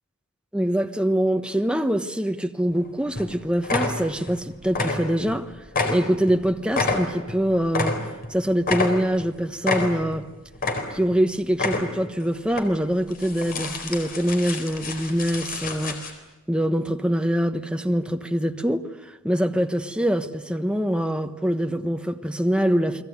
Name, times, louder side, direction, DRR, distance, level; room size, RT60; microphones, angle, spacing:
voice 1, 0.5-5.5 5.9-8.0 8.3-10.3 10.9-16.0 16.5-23.0, equal, 5° right, 1.2 m, -24 dB
sound 1, 2.7-2.9 3.2-3.3 3.6-4.4 4.7-5.4 5.7-8.3 8.6-9.3 9.6-10.2 10.5-11.2 11.5-12.1 12.5-12.6 13.1-16.1, left 3 dB, 45° left, 4.2 m, -28 dB
30.0 x 21.0 x 9.5 m
head